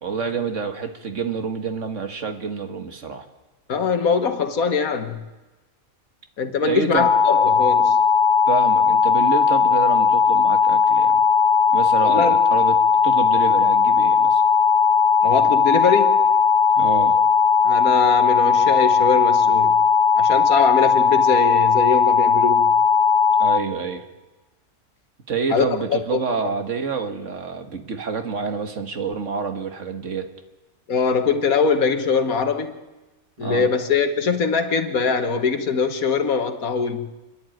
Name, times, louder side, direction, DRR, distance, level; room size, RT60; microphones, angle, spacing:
voice 1, 0.0-3.3 6.6-7.1 8.5-11.2 11.7-12.7 13.0-14.4 16.8-17.2 23.4-24.0 25.3-30.3 33.4-33.7, right 5 dB, 60° right, 7 dB, 1.9 m, -27 dB
voice 2, 3.7-5.2 6.4-8.0 12.0-12.4 15.2-16.2 17.6-19.8 20.2-22.7 25.5-26.5 30.9-32.7 33.4-37.1, left 5 dB, 90° left, 7 dB, 1.9 m, -22 dB
sound 1, 7.0-23.6, left 6 dB, 65° left, 1.5 m, -17 dB
28.5 x 11.0 x 9.1 m, 1.2 s
omnidirectional pair, 1.4 m